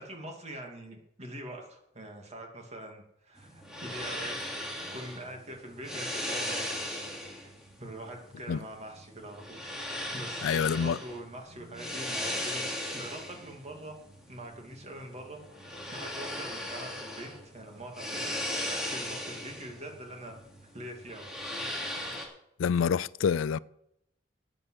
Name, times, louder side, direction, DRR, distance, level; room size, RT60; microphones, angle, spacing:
voice 1, 0.0-4.6 4.9-7.1 7.8-9.8 10.1-14.0 14.3-18.3 18.6-20.3 20.7-21.6, right 1 dB, 35° right, 2.5 m, -44 dB
sound 1, 3.4-22.3, left 1 dB, 5° right, 3.0 m, -38 dB
voice 2, 10.4-11.0 22.6-23.6, left 6 dB, 80° left, 0.4 m, -27 dB
12.0 x 9.1 x 6.5 m
head